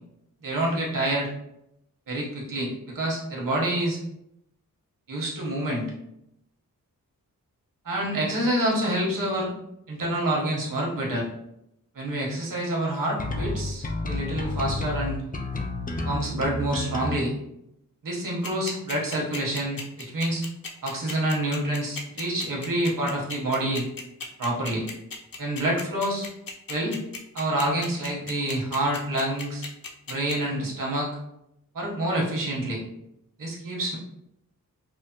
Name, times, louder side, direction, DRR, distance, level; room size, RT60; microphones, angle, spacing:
voice 1, 0.4-1.3 2.1-4.0 5.1-5.8 7.8-9.5 9.9-11.3 11.9-15.2 16.0-17.3 18.0-20.4 20.8-23.9 24.4-24.9 25.4-26.3 26.7-27.0 27.3-29.6 30.1-31.1 31.7-32.8 33.4-34.0, right 1 dB, 65° right, -3 dB, 1.2 m, -27 dB
sound 1, 13.2-17.2, left 2 dB, 25° left, 0.4 m, -30 dB
sound 2, 18.4-30.3, left 4 dB, 75° left, 0.7 m, -36 dB
4.9 x 2.1 x 2.9 m, 0.79 s
wide cardioid pair, 85°, 35 cm